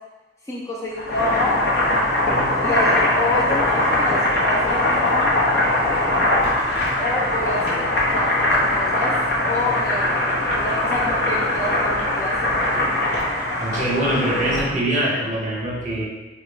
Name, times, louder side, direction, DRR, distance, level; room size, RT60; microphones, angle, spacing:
voice 1, 0.5-1.7 2.6-5.3 7.0-9.2 9.4-13.0, left 1 dB, 15° left, -4 dB, 0.4 m, -28 dB
Boiling, 0.9-14.7, left 1 dB, 65° left, 0.7 m, -21 dB
voice 2, 2.3-2.6 13.6-16.1, right 1 dB, 45° right, -4 dB, 0.8 m, -23 dB
2.9 x 2.3 x 3.4 m, 1.1 s
head